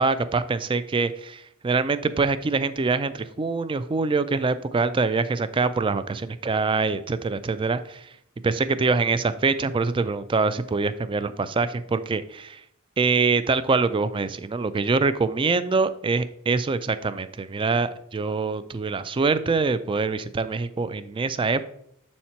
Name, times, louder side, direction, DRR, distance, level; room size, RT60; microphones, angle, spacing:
voice 1, 0.0-8.1 8.4-12.6 13.0-21.6, right 4 dB, 25° right, 14 dB, 0.3 m, -24 dB
7.4 x 4.3 x 4.4 m, 0.73 s
head